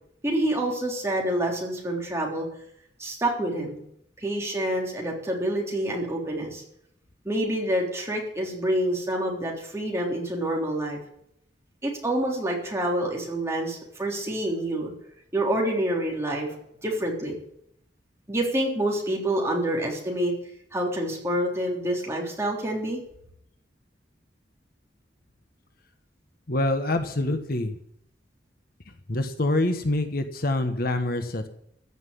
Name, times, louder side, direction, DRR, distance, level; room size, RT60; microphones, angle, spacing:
voice 1, 0.2-2.5 3.0-3.8 4.2-6.6 7.3-11.0 11.8-14.9 15.3-16.5 16.8-17.4 18.3-20.3 20.7-23.0, right 1 dB, 15° right, -1 dB, 3.5 m, -27 dB
voice 2, 26.5-27.8 29.1-31.5, left 2 dB, 55° left, 7 dB, 1.3 m, -26 dB
15.0 x 6.0 x 10.0 m, 0.71 s
head